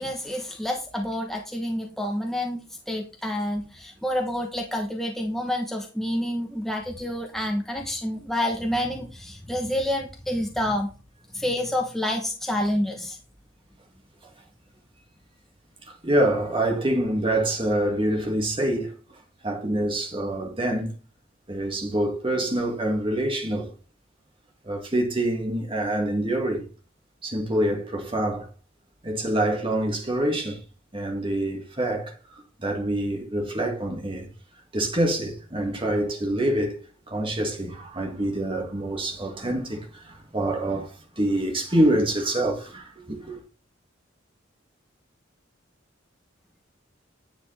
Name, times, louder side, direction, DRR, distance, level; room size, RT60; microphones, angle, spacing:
voice 1, 0.0-2.6 2.9-10.9 11.3-13.2, left 1 dB, ahead, 1.2 m, -28 dB
voice 2, 15.9-19.2 19.4-20.9 21.5-23.7 24.6-26.7 27.2-28.5 29.0-30.6 30.9-34.3 34.7-36.8 37.1-43.4, right 1 dB, 25° right, 2.3 m, -26 dB
10.0 x 6.9 x 3.5 m
head